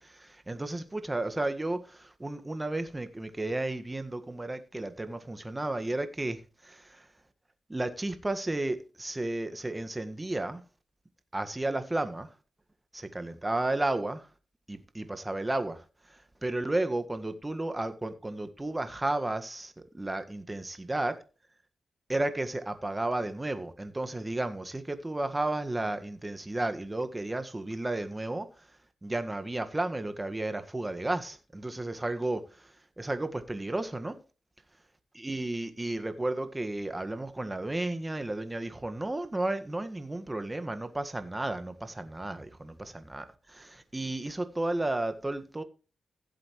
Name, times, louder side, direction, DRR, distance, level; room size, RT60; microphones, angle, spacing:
voice 1, 0.0-7.1 7.7-10.6 11.3-12.3 12.9-14.3 14.7-21.2 22.1-28.7 29.0-34.2 35.1-45.6, right 2 dB, 20° right, 1.6 m, -33 dB
16.0 x 7.5 x 3.2 m
cardioid pair, 65°, 0 cm